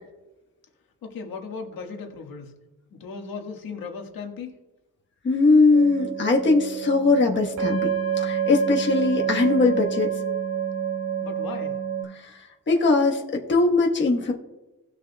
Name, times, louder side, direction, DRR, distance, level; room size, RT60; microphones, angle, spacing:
voice 1, 1.0-2.5 2.9-4.6 11.2-11.8, left 5 dB, 80° left, 2 dB, 1.7 m, -36 dB
voice 2, 5.2-7.9 8.2-10.1 12.1-14.3, left 3 dB, 35° left, 0 dB, 1.2 m, -20 dB
sound 1, 5.7-12.0, right 8 dB, 85° right, 3.1 m, -28 dB
18.5 x 6.8 x 2.3 m, 1.1 s
wide cardioid pair, 150°, 34 cm